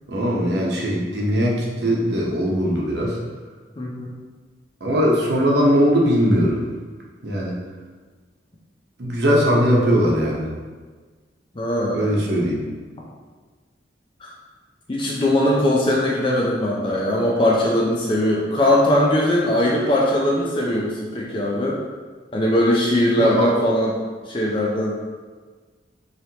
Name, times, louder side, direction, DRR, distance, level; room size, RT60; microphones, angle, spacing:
voice 1, 0.1-3.2 4.8-6.6 7.2-7.6 9.0-10.5 11.9-12.6 23.1-23.5, equal, 70° right, -3 dB, 0.9 m, -20 dB
voice 2, 3.8-4.1 11.6-12.1 14.2-14.3 14.9-21.8 22.3-24.0 24.3-25.0, left 1 dB, 30° left, -3 dB, 0.5 m, -20 dB
4.5 x 3.2 x 2.8 m, 1.4 s
head